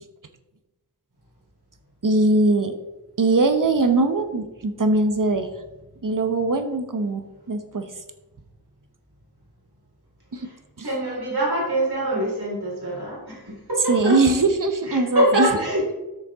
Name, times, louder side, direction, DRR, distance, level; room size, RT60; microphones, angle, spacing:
voice 1, 2.0-2.7 3.2-5.5 6.0-7.9 10.3-10.5 10.8-10.9 13.9-15.5, right 2 dB, 55° right, 8 dB, 1.0 m, -21 dB
voice 2, 10.8-14.2 14.9-15.9, right 1 dB, 75° right, -4 dB, 3.8 m, -24 dB
13.0 x 6.6 x 3.6 m, 1.0 s
wide cardioid pair, 50°, 39 cm